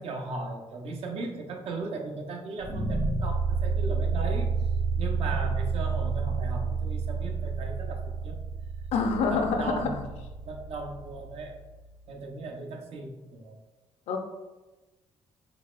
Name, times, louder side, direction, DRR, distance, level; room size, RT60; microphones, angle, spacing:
voice 1, 0.0-4.5 5.0-8.4 9.3-10.1 10.4-11.6 12.1-13.6, right 3 dB, 70° right, 2 dB, 0.6 m, -37 dB
sound 1, 2.6-11.6, right 4 dB, 85° right, 1.1 m, -30 dB
voice 2, 8.9-9.9 14.1-14.2, left 5 dB, 80° left, 5 dB, 0.5 m, -26 dB
3.9 x 2.9 x 2.4 m, 1.1 s
cardioid pair, 95°, 11 cm